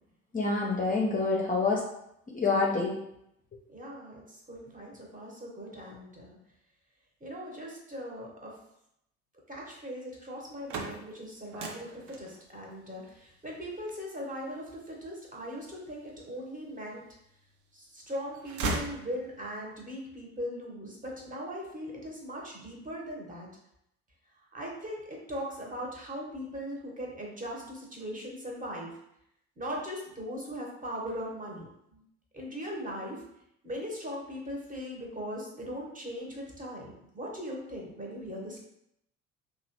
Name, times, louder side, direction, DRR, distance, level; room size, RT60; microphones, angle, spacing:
voice 1, 0.3-1.8 2.3-3.0, left 3 dB, 20° left, -2 dB, 0.6 m, -27 dB
voice 2, 3.7-6.4 7.2-8.6 9.5-17.0 17.7-23.5 24.4-29.0 29.6-32.0 32.3-33.2 33.6-38.6, equal, 20° right, -2 dB, 1.1 m, -39 dB
sound 1, 10.4-16.3 16.9-17.7 18.0-19.6, right 2 dB, 50° right, 0.7 m, -39 dB
2.9 x 2.4 x 2.9 m, 0.78 s
hypercardioid pair, 60°, 37 cm